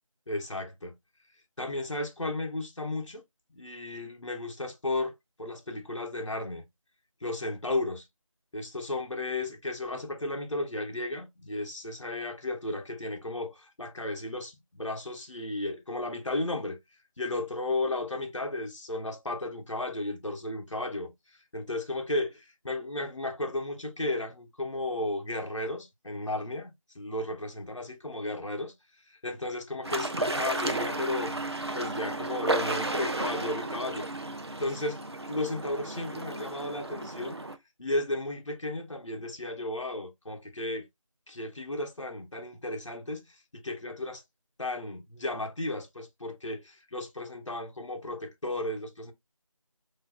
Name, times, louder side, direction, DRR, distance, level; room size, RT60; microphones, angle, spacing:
voice 1, 0.3-0.9 1.6-3.2 3.5-5.1 5.4-6.6 7.2-8.0 8.5-16.8 17.2-28.7 29.1-31.4 31.7-34.1 34.6-35.0 35.3-37.4 37.8-40.9 41.3-44.2 44.6-49.1, left 2 dB, 60° left, 0.8 m, -34 dB
sound 1, 29.8-37.6, right 2 dB, 50° right, 0.4 m, -33 dB
4.0 x 2.7 x 2.2 m
figure-of-eight pair, 180°, 18 cm